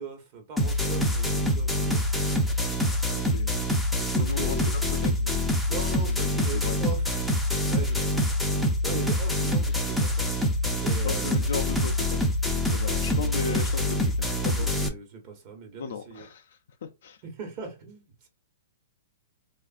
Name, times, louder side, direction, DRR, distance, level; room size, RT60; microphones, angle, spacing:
voice 1, 0.0-2.1 3.2-3.5 4.1-4.7 5.7-7.1 7.6-8.1 8.5-10.3 10.7-11.5 13.1-13.7 14.4-16.3 17.2-18.3, right 5 dB, 40° right, 1.1 m, -40 dB
sound 1, 0.6-14.9, left 1 dB, ahead, 0.5 m, -25 dB
voice 2, 3.1-3.5 4.2-5.5 6.3-6.8 11.0-12.2 12.5-14.0 14.4-14.7 15.8-16.4 17.0-17.2, left 6 dB, 70° left, 0.4 m, -36 dB
3.3 x 2.4 x 2.4 m
hypercardioid pair, 140°, 0 cm